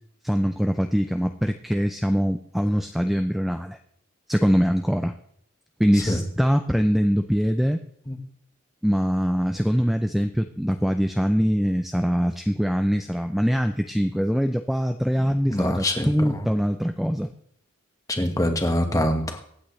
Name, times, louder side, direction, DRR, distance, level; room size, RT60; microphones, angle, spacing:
voice 1, 0.2-3.8 4.3-5.1 5.8-7.8 8.8-17.3, equal, ahead, 7 dB, 0.4 m, -23 dB
voice 2, 15.2-16.5 18.1-19.5, left 1 dB, 15° left, 5 dB, 1.3 m, -25 dB
24.0 x 9.0 x 3.2 m, 0.69 s
head